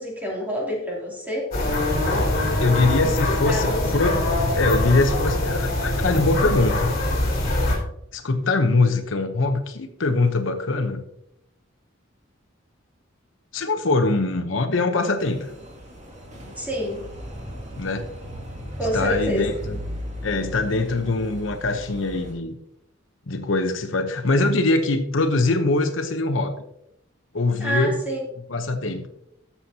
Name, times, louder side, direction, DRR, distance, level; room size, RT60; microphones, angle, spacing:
voice 1, 0.0-1.5 3.0-3.1 3.4-3.9 16.6-17.0 18.8-19.5 27.6-28.2, equal, 10° right, -4 dB, 2.9 m, -27 dB
sound 1, 1.5-7.8, left 1 dB, 45° left, 3.4 m, -23 dB
voice 2, 2.6-4.2 4.5-6.9 8.1-11.0 13.5-15.5 17.8-18.1 18.9-19.8 20.2-22.6 23.3-26.6 27.3-28.0 28.5-29.1, left 2 dB, 65° left, 6 dB, 0.9 m, -23 dB
sound 2, 15.2-22.3, equal, 35° right, 2.2 m, -36 dB
14.0 x 7.1 x 2.8 m, 0.78 s
head